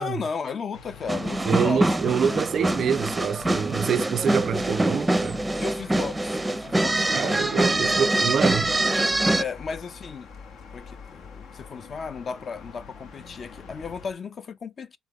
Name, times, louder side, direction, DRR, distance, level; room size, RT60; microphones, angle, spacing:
voice 1, 0.0-2.6 5.6-7.8 8.1-8.6 9.4-10.3 10.7-15.0, left 5 dB, 50° left, 0.5 m, -35 dB
sound 1, 0.7-14.1, left 5 dB, 80° left, 0.9 m, -45 dB
sound 2, 1.1-9.4, right 1 dB, 15° right, 0.5 m, -24 dB
voice 2, 1.5-5.4 7.1-8.7, right 7 dB, 60° right, 0.4 m, -26 dB
4.0 x 3.5 x 3.6 m
cardioid pair, 90°, 0 cm